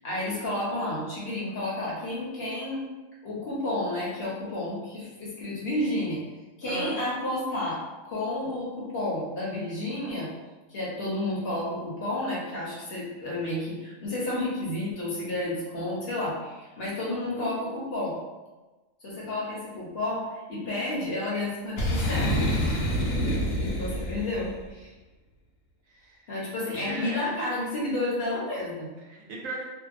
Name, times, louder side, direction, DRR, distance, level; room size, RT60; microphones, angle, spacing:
voice 1, 0.0-2.8 3.2-6.2 6.6-10.3 10.7-18.2 19.0-22.3 23.6-24.9 26.3-28.9, left 1 dB, 55° left, -6 dB, 0.8 m, -31 dB
voice 2, 6.6-7.0 22.7-23.0 25.9-26.3 26.8-27.3 29.1-29.6, right 3 dB, 75° right, -1 dB, 0.9 m, -37 dB
Boom, 21.8-24.5, equal, 90° left, 1.1 m, -27 dB
2.6 x 2.1 x 2.4 m, 1.2 s
omnidirectional pair, 1.4 m